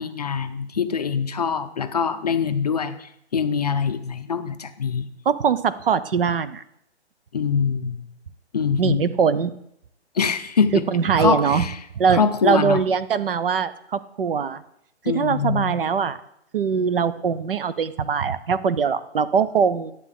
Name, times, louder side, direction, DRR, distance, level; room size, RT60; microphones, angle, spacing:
voice 1, 0.0-5.1 7.3-8.1 8.5-9.0 10.2-10.8 11.2-11.8 12.1-12.8 15.1-15.7, left 6 dB, 35° left, 9 dB, 0.5 m, -24 dB
voice 2, 5.3-6.6 8.8-9.5 10.7-11.6 12.0-14.6 15.0-16.2 16.5-19.9, right 6 dB, 55° right, 15 dB, 0.6 m, -22 dB
11.5 x 8.2 x 3.7 m, 0.74 s
hypercardioid pair, 170°, 34 cm